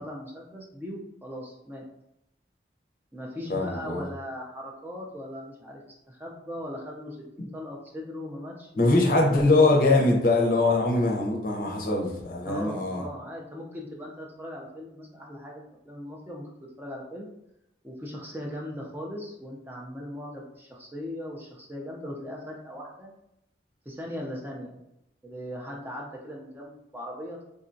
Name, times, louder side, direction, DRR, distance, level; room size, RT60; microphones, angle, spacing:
voice 1, 0.0-1.8 3.1-5.8 6.1-9.1 12.4-17.3 17.8-23.1 23.9-24.8 25.2-27.4, equal, 10° right, -2 dB, 0.4 m, -39 dB
voice 2, 3.5-4.0 8.8-13.0, left 2 dB, 50° left, 0 dB, 0.6 m, -22 dB
3.7 x 2.2 x 2.6 m, 0.83 s
head